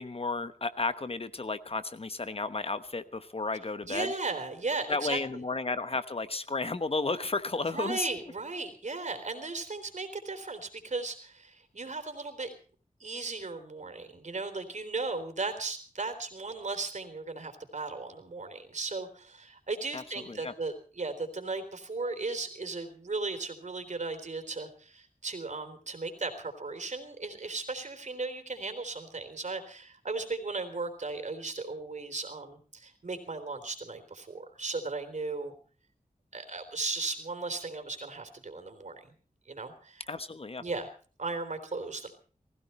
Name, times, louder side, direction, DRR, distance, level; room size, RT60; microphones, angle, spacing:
voice 1, 0.0-4.1 4.9-8.1 19.9-20.5 40.1-40.6, left 3 dB, 45° left, 12 dB, 1.0 m, -33 dB
voice 2, 3.8-5.4 7.6-12.5 13.0-35.6 36.3-39.1 39.5-40.1 40.6-40.9 41.2-42.1, right 3 dB, 60° right, 7 dB, 3.7 m, -36 dB
20.0 x 15.5 x 4.3 m, 0.41 s
wide cardioid pair, 80°, 14 cm